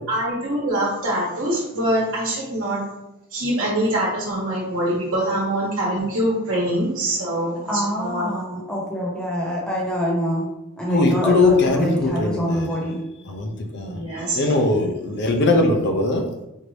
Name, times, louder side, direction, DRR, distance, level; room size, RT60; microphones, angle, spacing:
voice 1, 0.1-2.8 3.3-8.3 13.9-14.5, right 1 dB, 65° right, -6 dB, 1.0 m, -24 dB
voice 2, 7.7-10.4 10.8-13.0, equal, 5° left, -4 dB, 0.9 m, -25 dB
voice 3, 10.9-12.7 13.3-14.0 14.3-16.2, left 3 dB, 50° left, 3 dB, 0.5 m, -20 dB
4.5 x 2.6 x 3.1 m, 0.91 s
head